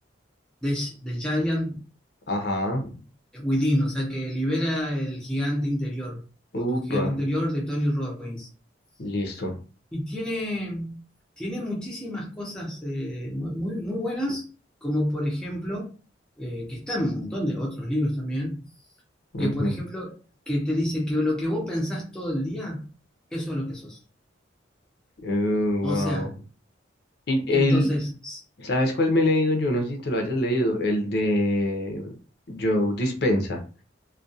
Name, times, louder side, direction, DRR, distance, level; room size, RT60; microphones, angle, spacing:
voice 1, 0.6-1.8 3.3-6.2 6.5-8.5 9.9-11.0 11.4-14.5 14.8-15.9 16.4-18.6 19.4-20.2 20.5-22.8 23.3-24.0 25.8-26.3 27.5-28.4, equal, 5° left, -4 dB, 0.5 m, -28 dB
voice 2, 2.3-2.9 6.5-7.2 9.0-9.5 19.3-19.7 25.2-26.3 27.3-27.9 28.6-32.1 32.5-33.6, left 1 dB, 55° left, 3 dB, 0.6 m, -24 dB
2.3 x 2.2 x 2.6 m, 0.36 s
head